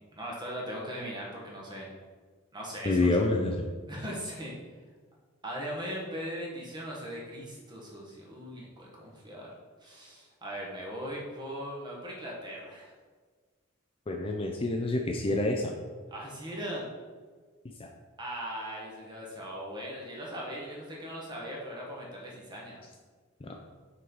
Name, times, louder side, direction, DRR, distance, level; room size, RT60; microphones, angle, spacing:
voice 1, 0.2-1.9 2.5-3.1 3.9-4.5 5.4-9.5 9.8-12.9 16.1-16.8 18.2-22.8, equal, 20° right, -4 dB, 1.4 m, -39 dB
voice 2, 2.8-3.7 14.1-15.7 17.8-17.9 23.4-23.5, left 2 dB, 25° left, 2 dB, 0.4 m, -27 dB
6.0 x 4.0 x 4.5 m, 1.5 s
head